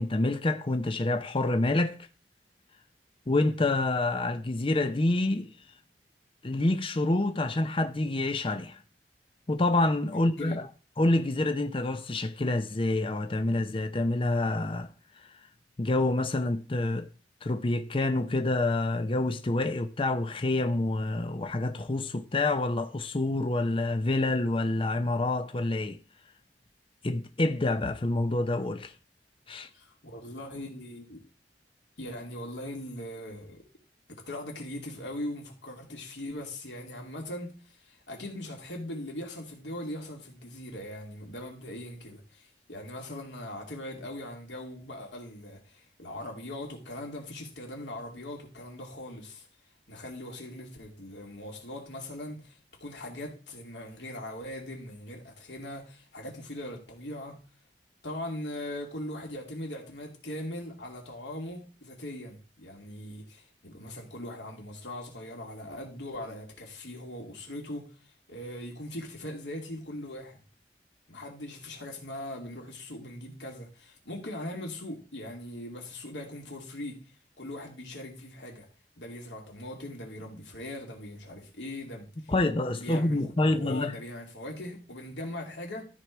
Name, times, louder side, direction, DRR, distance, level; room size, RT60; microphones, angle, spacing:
voice 1, 0.0-2.0 3.3-5.5 6.4-8.8 9.5-10.7 11.0-14.9 15.8-17.1 17.4-26.0 27.0-28.9 29.5-29.7 82.3-83.9, left 2 dB, 30° left, 0.6 m, -27 dB
voice 2, 10.1-10.6 29.7-31.2 32.0-33.6 34.1-49.5 49.9-57.4 58.0-67.9 68.3-70.4 71.1-77.0 77.4-78.7 79.0-82.3 82.8-85.8, left 1 dB, 90° left, 2.7 m, -40 dB
13.0 x 4.6 x 4.6 m
head